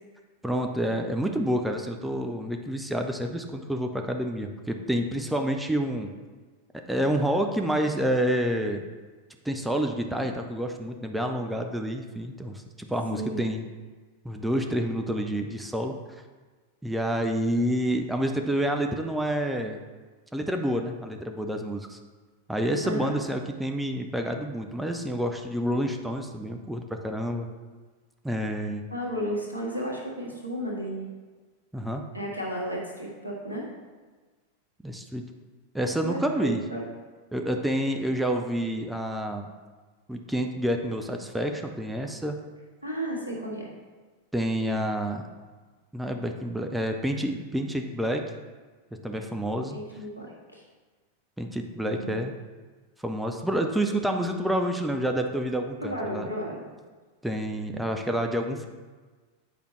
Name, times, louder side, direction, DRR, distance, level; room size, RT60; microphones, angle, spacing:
voice 1, 0.4-6.1 6.9-8.8 9.4-13.6 14.2-15.9 16.8-19.8 20.3-22.0 22.5-27.5 28.2-28.9 31.7-32.0 34.8-35.3 35.7-36.6 37.3-39.5 40.1-42.4 44.3-45.2 45.9-48.2 49.0-49.8 51.4-52.3 53.0-56.3 57.2-58.7, equal, 5° right, 4 dB, 0.5 m, -28 dB
voice 2, 13.1-13.4 22.8-23.1 28.9-31.1 32.1-33.7 36.0-36.8 42.8-43.7 49.7-50.6 51.8-52.2 55.8-56.7, equal, 90° right, -3 dB, 1.4 m, -33 dB
8.4 x 5.0 x 3.1 m, 1.4 s
figure-of-eight pair, 90°, 0 cm